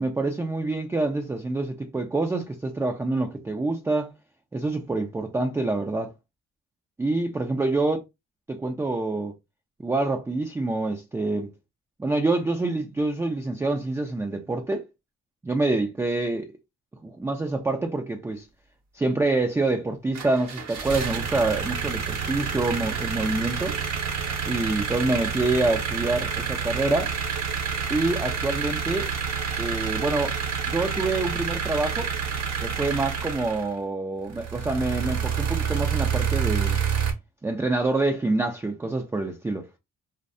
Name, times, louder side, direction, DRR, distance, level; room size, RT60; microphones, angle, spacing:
voice 1, 0.0-4.1 4.5-6.1 7.0-8.0 8.5-9.3 9.8-11.5 12.0-14.9 15.4-16.5 17.0-18.4 18.9-23.8 24.5-27.1 27.9-29.1 29.6-30.4 30.7-32.1 32.6-36.8 37.4-39.8, right 2 dB, 10° right, 0.3 m, -26 dB
sound 1, 20.1-33.7 34.3-37.1, right 7 dB, 60° right, 0.8 m, -28 dB
2.5 x 2.1 x 2.5 m
cardioid pair, 90°, 30 cm